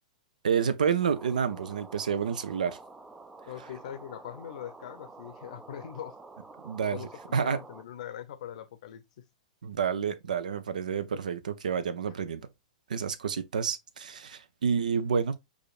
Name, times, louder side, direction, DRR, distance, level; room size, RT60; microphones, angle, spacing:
voice 1, 0.4-2.8 6.6-7.6 9.6-12.4 12.9-15.4, right 7 dB, 80° right, 0.5 m, -29 dB
sound 1, 1.0-7.8, right 3 dB, 10° right, 0.3 m, -49 dB
voice 2, 3.5-6.2 6.9-9.0, left 10 dB, 65° left, 0.6 m, -42 dB
5.0 x 2.5 x 2.3 m
hypercardioid pair, 115°, 4 cm